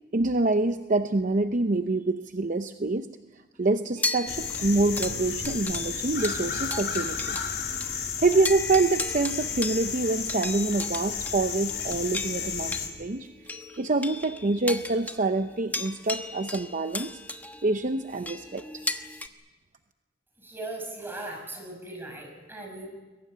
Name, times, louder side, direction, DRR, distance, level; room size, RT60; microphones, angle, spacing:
voice 1, 0.1-3.1 3.6-7.4 8.2-13.3 13.8-17.2 17.6-18.6, right 2 dB, 45° right, 8 dB, 0.8 m, -26 dB
sound 1, 4.0-7.5 7.8-7.9 8.3-19.3, left 2 dB, 10° left, 1.1 m, -36 dB
sound 2, 4.3-12.9, left 6 dB, 60° left, 3.3 m, -32 dB
voice 2, 20.4-22.9, right 2 dB, 10° right, 1 dB, 5.9 m, -38 dB
23.0 x 17.5 x 10.0 m, 1.2 s
head